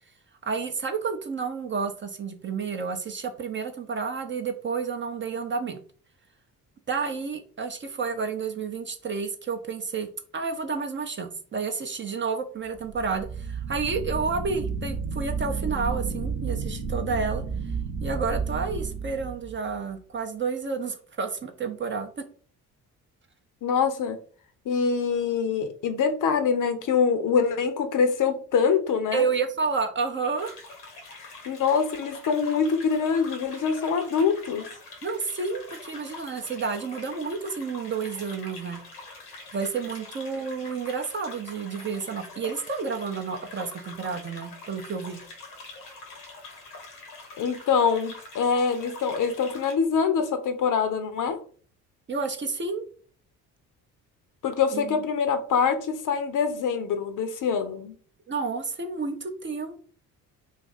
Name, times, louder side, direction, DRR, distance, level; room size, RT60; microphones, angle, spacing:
voice 1, 0.4-5.8 6.9-17.4 18.0-22.1 29.1-30.6 35.0-38.8 39.5-45.2 52.1-52.8 54.7-55.0 58.3-59.8, right 5 dB, 25° right, 0.6 m, -30 dB
sound 1, 12.8-19.8, right 5 dB, 45° right, 0.9 m, -32 dB
voice 2, 23.6-24.2 24.7-29.2 31.2-34.7 47.4-51.4 54.4-57.9, left 6 dB, 45° left, 0.6 m, -24 dB
sound 2, 30.4-49.8, left 3 dB, 85° left, 1.0 m, -44 dB
2.5 x 2.4 x 4.0 m
hypercardioid pair, 50°, 45 cm